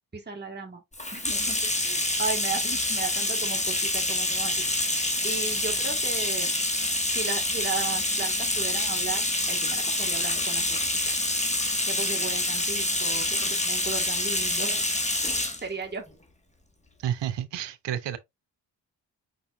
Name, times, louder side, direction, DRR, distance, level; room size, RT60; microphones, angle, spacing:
voice 1, 0.1-0.8 1.1-4.5 4.9-6.5 7.1-10.8 11.9-14.9 15.6-16.0, right 4 dB, 20° right, 1.7 m, -35 dB
Bathtub (filling or washing), 0.9-15.6, left 1 dB, 15° left, 1.7 m, -27 dB
voice 2, 17.0-18.2, right 10 dB, 70° right, 0.8 m, -30 dB
5.3 x 4.1 x 2.5 m
supercardioid pair, 45°, 45 cm